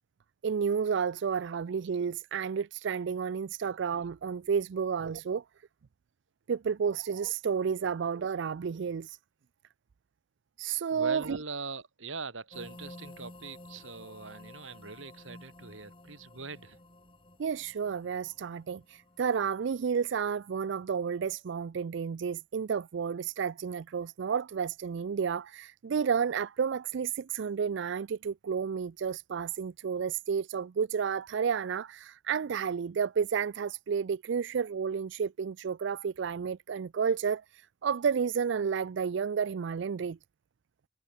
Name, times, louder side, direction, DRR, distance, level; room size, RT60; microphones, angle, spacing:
voice 1, 0.4-5.4 6.5-9.2 10.6-11.4 17.4-40.2, right 6 dB, 60° right, 0.4 m, -31 dB
voice 2, 10.9-16.8, right 4 dB, 80° right, 3.0 m, -42 dB
sound 1, 12.5-20.3, left 1 dB, 25° left, 3.6 m, -52 dB
head